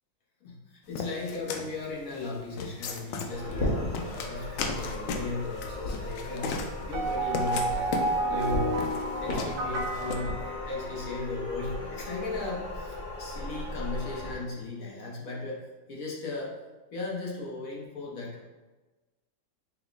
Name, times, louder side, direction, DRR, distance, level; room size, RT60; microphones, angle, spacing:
voice 1, 0.4-6.6 6.9-8.0 8.3-8.9 9.2-16.6 16.9-18.4, left 3 dB, 60° left, -3 dB, 1.0 m, -36 dB
sound 1, 1.0-10.2, left 4 dB, 85° left, 1.2 m, -36 dB
sound 2, 3.3-14.3, left 1 dB, 40° left, 0.7 m, -36 dB
sound 3, 6.9-11.2, right 2 dB, 70° right, 1.1 m, -31 dB
6.0 x 2.0 x 3.8 m, 1.2 s
omnidirectional pair, 1.9 m